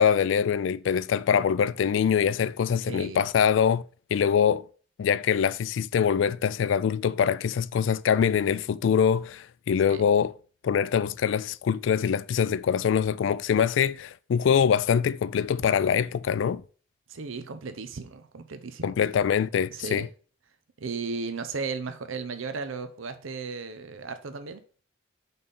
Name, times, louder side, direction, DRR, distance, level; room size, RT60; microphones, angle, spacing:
voice 1, 0.0-3.8 4.1-4.6 5.0-10.3 10.6-16.6 18.8-20.1, left 7 dB, 70° left, 0.3 m, -24 dB
voice 2, 2.8-3.2 9.9-10.1 17.1-18.9 19.7-20.1 20.8-24.6, right 4 dB, 85° right, 0.7 m, -35 dB
5.4 x 4.1 x 5.3 m
head